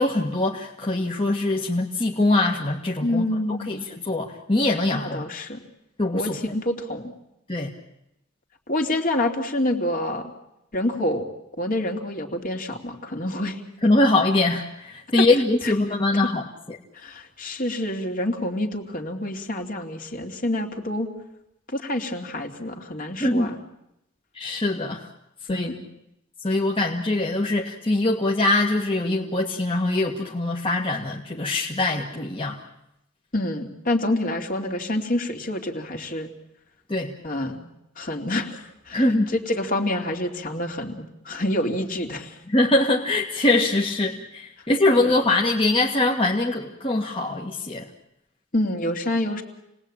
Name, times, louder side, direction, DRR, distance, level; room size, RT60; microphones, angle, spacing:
voice 1, 0.0-3.3 3.7-5.2 6.0-6.4 7.5-7.7 13.8-16.8 23.2-23.5 24.3-25.1 25.5-25.7 26.4-32.6 36.9-37.2 38.9-39.3 42.5-47.9, left 2 dB, 25° left, -1 dB, 1.9 m, -23 dB
voice 2, 3.0-3.8 4.9-5.6 6.1-7.1 8.7-10.3 10.7-11.2 11.6-13.6 15.6-15.7 17.0-21.1 21.7-23.6 25.5-25.8 33.3-36.3 37.2-37.7 38.0-39.0 39.3-42.3 45.0-45.1 48.5-49.4, left 1 dB, 45° left, 3 dB, 3.0 m, -27 dB
29.0 x 20.0 x 8.9 m, 0.85 s
head